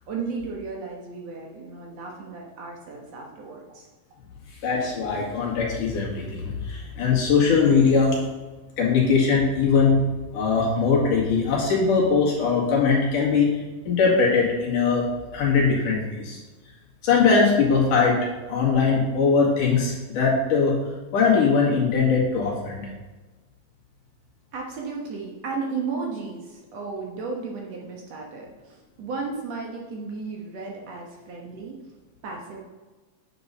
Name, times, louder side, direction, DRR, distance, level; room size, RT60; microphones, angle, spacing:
voice 1, 0.0-3.9 24.5-31.8 32.2-32.6, right 4 dB, 60° right, -1 dB, 2.0 m, -34 dB
voice 2, 4.6-8.2 8.8-10.0 10.3-15.1 15.3-16.4 17.0-18.2 18.5-20.8 21.1-22.9, left 5 dB, 75° left, -4 dB, 3.8 m, -21 dB
9.4 x 6.8 x 4.1 m, 1.2 s
omnidirectional pair, 3.8 m